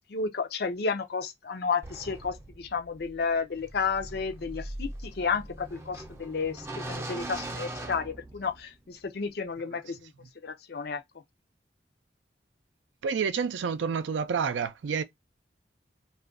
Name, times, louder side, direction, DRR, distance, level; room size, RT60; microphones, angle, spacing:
voice 1, 0.1-10.0 10.4-11.0, left 5 dB, 55° left, 0.5 m, -32 dB
sound 1, 1.8-8.8, right 1 dB, 15° right, 0.4 m, -41 dB
voice 2, 13.0-15.0, right 6 dB, 85° right, 0.4 m, -29 dB
2.4 x 2.2 x 3.6 m
head